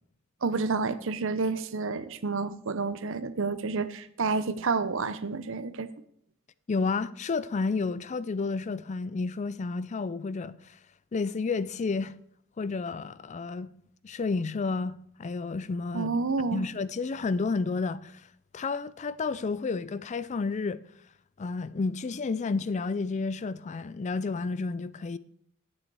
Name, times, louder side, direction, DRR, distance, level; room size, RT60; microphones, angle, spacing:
voice 1, 0.4-5.9 15.9-16.6, right 4 dB, 65° right, 0.7 m, -29 dB
voice 2, 6.7-10.8 11.1-12.1 12.6-13.7 14.0-16.1 16.5-18.2 18.5-20.8 21.4-25.2, left 4 dB, 35° left, 0.4 m, -31 dB
10.0 x 8.7 x 4.7 m
head